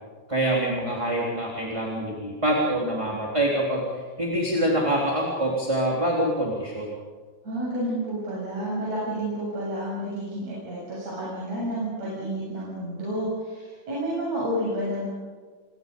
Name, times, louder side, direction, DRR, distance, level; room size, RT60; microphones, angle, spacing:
voice 1, 0.3-3.8 4.2-6.9, right 1 dB, 10° right, -3 dB, 3.5 m, -25 dB
voice 2, 7.4-15.1, right 1 dB, 50° right, -7 dB, 8.7 m, -30 dB
28.5 x 23.0 x 5.4 m, 1.5 s
omnidirectional pair, 3.7 m